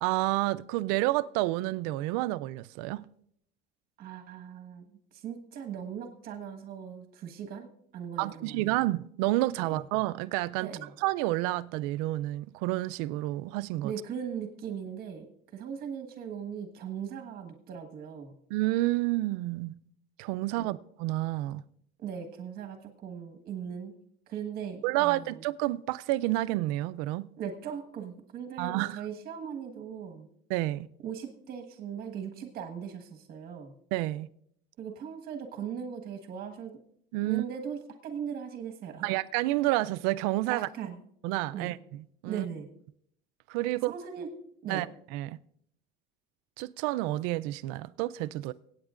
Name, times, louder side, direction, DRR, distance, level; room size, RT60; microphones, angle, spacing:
voice 1, 0.0-3.0 8.2-13.9 18.5-19.7 20.2-21.6 24.8-27.3 28.6-29.0 30.5-30.9 33.9-34.3 37.1-37.4 39.0-40.7 41.2-41.8 42.2-42.4 43.5-43.9 44.7-44.9 45.1-45.4 46.6-48.5, right 18 dB, 90° right, 0.4 m, -29 dB
voice 2, 4.0-8.8 9.6-9.8 10.6-10.9 13.8-15.2 15.5-18.3 20.6-20.7 22.0-23.9 24.3-25.4 27.4-30.3 31.0-33.7 34.8-36.7 37.2-39.2 40.5-41.0 41.5-41.7 42.2-42.7 43.9-44.3 44.6-44.8, right 8 dB, 50° right, 1.5 m, -39 dB
23.5 x 8.9 x 2.5 m
cardioid pair, 135°, 20 cm